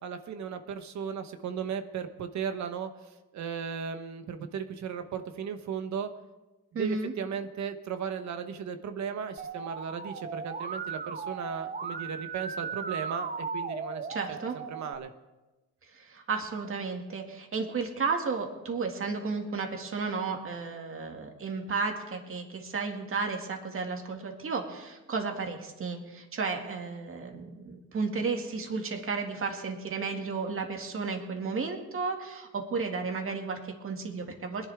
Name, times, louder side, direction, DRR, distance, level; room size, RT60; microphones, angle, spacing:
voice 1, 0.0-6.1 6.7-15.1, right 7 dB, 65° right, 8 dB, 1.2 m, -36 dB
voice 2, 6.7-7.1 14.1-14.5 15.9-34.7, right 4 dB, 45° right, 3 dB, 2.2 m, -33 dB
Musical instrument, 9.4-14.9, right 5 dB, 30° right, 0.9 m, -37 dB
21.0 x 11.0 x 3.6 m, 1.1 s
cardioid pair, 90°, 30 cm